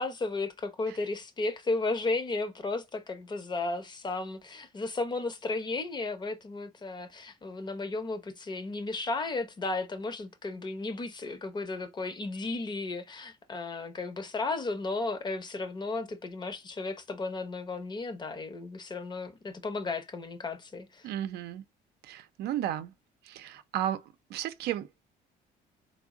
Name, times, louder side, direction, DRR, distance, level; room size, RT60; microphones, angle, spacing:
voice 1, 0.0-21.1, left 3 dB, 25° left, 0.7 m, -34 dB
voice 2, 21.0-21.6 22.0-22.9 23.2-24.0 24.3-25.0, right 11 dB, 75° right, 0.5 m, -34 dB
3.6 x 2.0 x 3.6 m
cardioid pair, 110°, 17 cm